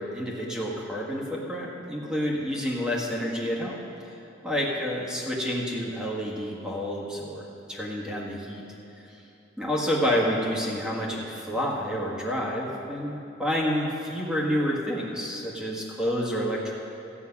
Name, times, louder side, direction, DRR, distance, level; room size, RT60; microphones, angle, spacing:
voice 1, 0.0-3.8 4.0-4.1 4.4-8.6 9.6-16.7, equal, 5° right, -4 dB, 1.6 m, -29 dB
14.0 x 9.3 x 5.9 m, 2.9 s
head